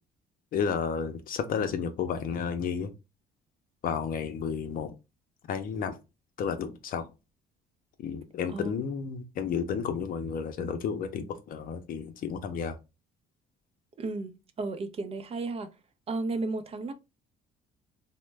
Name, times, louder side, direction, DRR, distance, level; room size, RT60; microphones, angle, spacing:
voice 1, 0.5-2.9 3.8-4.9 5.5-6.0 6.4-7.1 8.0-12.8, left 6 dB, 55° left, 0.6 m, -32 dB
voice 2, 14.0-15.7 16.1-16.9, right 3 dB, 35° right, 0.5 m, -33 dB
3.0 x 2.1 x 3.2 m
cardioid pair, 110°, 17 cm